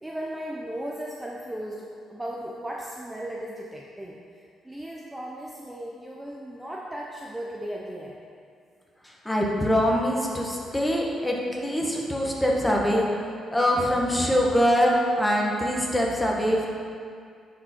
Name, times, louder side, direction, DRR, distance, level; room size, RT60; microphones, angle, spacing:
voice 1, 0.0-8.2, right 1 dB, 10° right, -3 dB, 0.8 m, -36 dB
voice 2, 9.2-13.1 13.5-16.7, equal, 10° left, -2 dB, 1.5 m, -23 dB
9.9 x 5.3 x 4.5 m, 2.3 s
cardioid pair, 90°, 0 cm